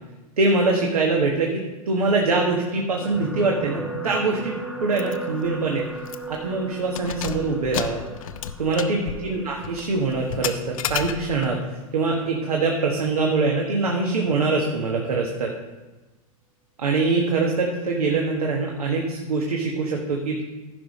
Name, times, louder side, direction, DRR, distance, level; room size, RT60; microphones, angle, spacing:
voice 1, 0.4-5.9 6.3-8.0 8.6-11.6 11.9-15.5 16.8-20.4, right 3 dB, 85° right, 0 dB, 1.4 m, -23 dB
sound 1, 3.0-11.5 12.2-12.5 12.7-12.8, right 3 dB, ahead, 1.2 m, -37 dB
Keys jangling, 5.0-5.2 5.5-5.6 6.0-6.4 6.8-11.6, left 10 dB, 65° left, 0.7 m, -32 dB
15.0 x 5.5 x 4.2 m, 1.2 s
hypercardioid pair, 105°, 19 cm